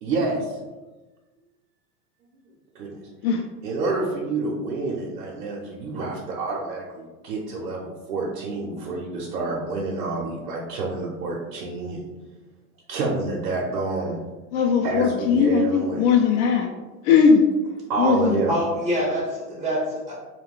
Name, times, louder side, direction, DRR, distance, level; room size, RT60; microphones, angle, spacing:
voice 1, 0.0-0.6 2.7-2.9 3.6-12.0 12.9-14.2 14.8-16.0 17.9-18.5, right 3 dB, 75° right, -4 dB, 0.8 m, -28 dB
voice 2, 14.5-16.7 17.0-17.4 18.0-18.4, left 6 dB, 60° left, 2 dB, 0.5 m, -19 dB
voice 3, 18.5-20.1, equal, 10° right, -5 dB, 0.6 m, -26 dB
2.3 x 2.2 x 3.5 m, 1.2 s
hypercardioid pair, 105°, 47 cm